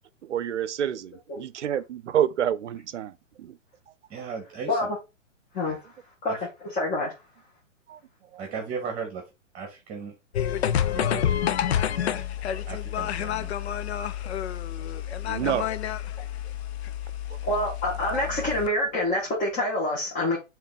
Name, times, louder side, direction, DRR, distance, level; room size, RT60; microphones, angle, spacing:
voice 1, 0.2-3.1 3.4-3.6 7.9-8.0 8.3-8.5 11.2-11.3 12.1-12.2 12.5-12.6 14.2-14.3 15.1-15.8, right 10 dB, 65° right, 0.7 m, -29 dB
voice 2, 4.1-4.8 5.7-5.8 6.3-6.4 8.4-9.2 9.5-10.1 10.8-11.5 12.5-13.5 15.4-15.6, right 5 dB, 20° right, 1.8 m, -36 dB
voice 3, 6.7-7.1 17.4-20.4, left 1 dB, 20° left, 2.1 m, -26 dB
sound 1, 10.3-18.7, left 10 dB, 55° left, 0.7 m, -29 dB
6.6 x 3.4 x 4.8 m
figure-of-eight pair, 120°, 38 cm